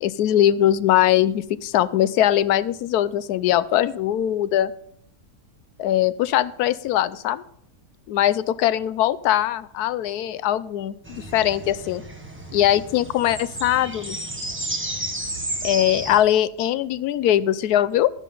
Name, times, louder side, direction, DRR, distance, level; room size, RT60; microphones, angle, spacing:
voice 1, 0.0-4.7 5.8-7.4 8.1-12.0 12.5-14.2 15.6-18.1, left 12 dB, 85° left, 16 dB, 1.1 m, -21 dB
sound 1, 11.0-16.2, right 1 dB, 10° right, 1.2 m, -32 dB
12.5 x 10.0 x 3.8 m, 0.68 s
omnidirectional pair, 1.6 m